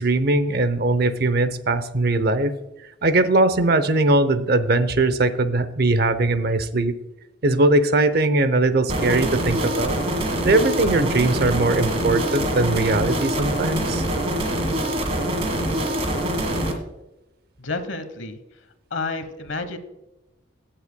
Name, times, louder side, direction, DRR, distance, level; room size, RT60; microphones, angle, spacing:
voice 1, 0.0-2.5 3.0-6.9 7.4-10.0 10.4-14.0, right 2 dB, 50° right, 13 dB, 0.7 m, -20 dB
sound 1, 8.9-16.7, right 1 dB, 30° right, 1.6 m, -24 dB
voice 2, 17.6-18.4 18.9-19.8, left 3 dB, 70° left, 10 dB, 1.1 m, -30 dB
16.5 x 7.4 x 2.2 m, 0.95 s
head